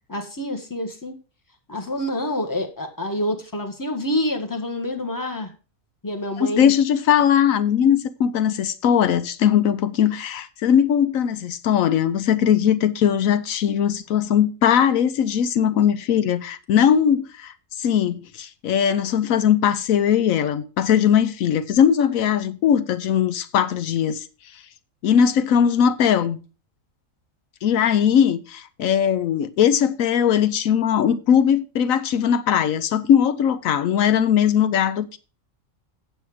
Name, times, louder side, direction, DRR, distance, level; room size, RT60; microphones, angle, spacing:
voice 1, 0.1-1.1 1.7-5.5 6.0-6.7, left 1 dB, 15° left, 1.4 m, -27 dB
voice 2, 6.4-24.3 25.0-26.4 27.6-35.2, left 8 dB, 80° left, 1.1 m, -19 dB
8.2 x 7.8 x 4.9 m
omnidirectional pair, 1.4 m